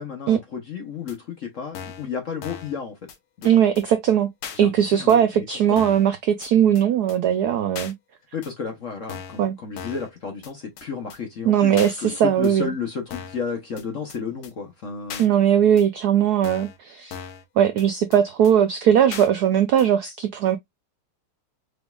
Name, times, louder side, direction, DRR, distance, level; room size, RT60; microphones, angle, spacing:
voice 1, 0.0-3.0 3.4-3.6 4.5-5.9 8.3-15.3, left 6 dB, 50° left, 0.9 m, -32 dB
sound 1, 1.1-1.2 1.7-2.1 2.4-2.7 3.1-3.2 3.4-3.5 3.8-3.9 4.4-4.6 5.1-5.2 5.8-6.1 6.4-6.5 6.8-6.9 7.1-7.2 7.7-7.9 8.4-8.5 9.1-9.4 9.8-10.1 10.4-10.5 10.8-10.9 11.1-11.2 11.8-11.9 12.4-12.5 13.1-13.4 13.8-13.9 14.1-14.2 14.4-14.5 15.1-15.3 15.8-15.9 16.4-16.8 17.1-17.4 17.8-17.9 18.1-18.2 18.4-18.5 19.1-19.3 19.8-19.9, left 7 dB, 85° left, 1.9 m, -37 dB
voice 2, 3.4-4.3 4.6-7.9 9.4-9.5 11.4-12.7 15.2-17.2 17.6-20.6, right 9 dB, 85° right, 0.8 m, -19 dB
5.0 x 3.4 x 2.3 m
omnidirectional pair, 2.4 m